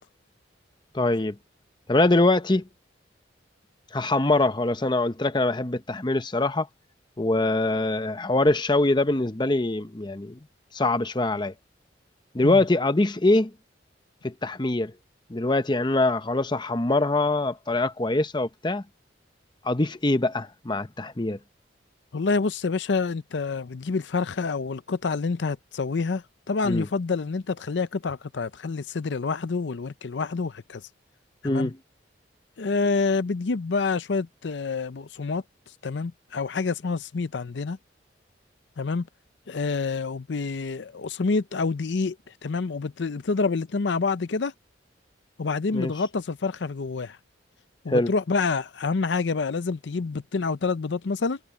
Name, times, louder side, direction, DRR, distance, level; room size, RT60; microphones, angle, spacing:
voice 1, 0.9-1.4 1.9-2.6 3.9-6.7 7.2-10.4 10.7-11.5 12.3-13.5 14.2-14.9 15.3-18.8 19.6-21.4 26.6-26.9 31.4-31.8 45.7-45.9 47.9-48.1, left 2 dB, 25° left, 0.8 m, -23 dB
voice 2, 22.1-30.8 31.4-31.7 32.6-35.4 35.8-37.8 38.8-39.1 39.5-42.2 42.4-44.5 45.4-47.2 47.8-51.4, left 4 dB, 70° left, 0.6 m, -27 dB
head